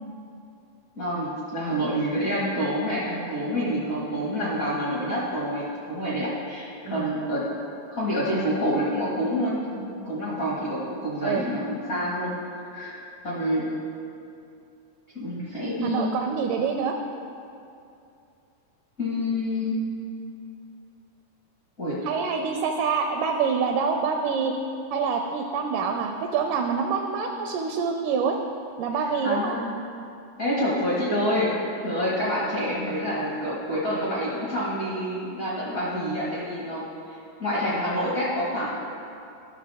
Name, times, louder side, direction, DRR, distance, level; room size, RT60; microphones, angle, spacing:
voice 1, 0.9-7.5 7.9-12.3 12.7-13.0 13.2-13.7 15.1-16.1 19.0-19.8 21.8-22.0 29.2-29.7 30.4-31.5 31.8-38.7, equal, 50° left, -7 dB, 1.0 m, -27 dB
voice 2, 15.8-17.0 22.0-24.5 24.9-28.4 28.8-29.5, right 5 dB, 80° right, 3 dB, 1.9 m, -26 dB
13.5 x 6.3 x 3.5 m, 2.6 s
omnidirectional pair, 4.1 m